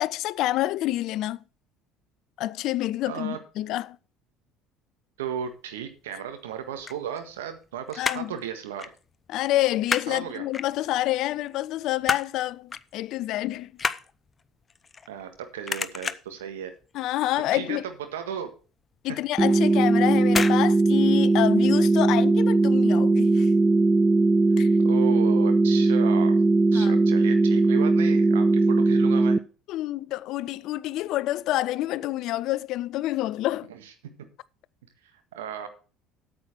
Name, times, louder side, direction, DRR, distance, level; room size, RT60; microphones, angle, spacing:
voice 1, 0.0-1.4 2.4-4.0 8.0-8.3 9.3-13.7 16.9-17.9 19.0-23.5 24.6-24.7 26.7-27.0 29.7-33.7, left 15 dB, 60° left, 0.5 m, -28 dB
voice 2, 3.1-3.4 5.2-8.9 10.1-10.4 15.1-16.7 17.5-17.8 18.1-18.5 24.8-26.4 26.7-29.4 35.3-35.7, right 8 dB, 80° right, 1.6 m, -35 dB
sound 1, 6.6-7.6 7.9-8.4 8.8-9.0 9.3-10.1 10.5-11.1 11.5-12.4 12.7-12.9 13.2-15.4 15.7-16.4 16.8-17.2 17.4-17.5 17.9-18.0 18.4-18.5 19.4-19.7 20.3-20.6 20.9-21.0, left 5 dB, 30° left, 0.7 m, -30 dB
sound 2, 19.4-29.4, right 3 dB, 20° right, 0.4 m, -19 dB
8.9 x 7.6 x 5.9 m
hypercardioid pair, 65°, 0 cm